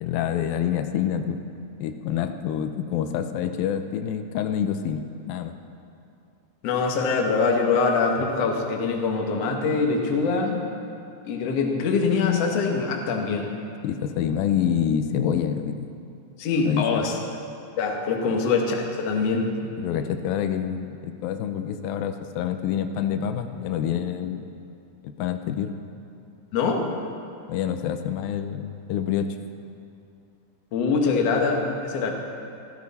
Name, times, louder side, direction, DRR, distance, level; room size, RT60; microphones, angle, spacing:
voice 1, 0.0-5.5 13.8-16.0 16.5-17.0 19.8-24.5 25.0-25.7 27.5-29.3, left 9 dB, 90° left, 8 dB, 2.5 m, -27 dB
voice 2, 6.6-10.6 11.3-13.5 16.4-17.1 17.8-19.5 26.5-26.8 30.7-32.1, left 4 dB, 60° left, 1 dB, 2.0 m, -23 dB
15.0 x 14.0 x 4.2 m, 2.5 s
omnidirectional pair, 4.0 m